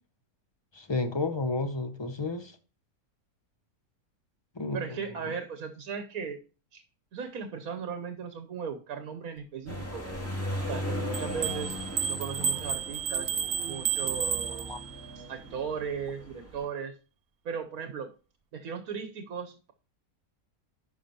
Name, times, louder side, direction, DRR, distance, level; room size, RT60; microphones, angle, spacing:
voice 1, 0.7-2.5 4.6-4.8 14.7-14.8, left 3 dB, 45° left, 0.3 m, -31 dB
voice 2, 4.7-6.4 6.7-6.8 7.1-10.0 10.7-11.8 12.1-13.3 13.6-14.8 15.1-17.0 17.4-18.1 18.5-19.7, right 6 dB, 75° right, 1.3 m, -37 dB
sound 1, 9.7-16.7, equal, 10° left, 2.2 m, -37 dB
sound 2, 11.1-15.1, right 8 dB, 55° right, 0.7 m, -32 dB
10.5 x 5.8 x 2.9 m
omnidirectional pair, 1.5 m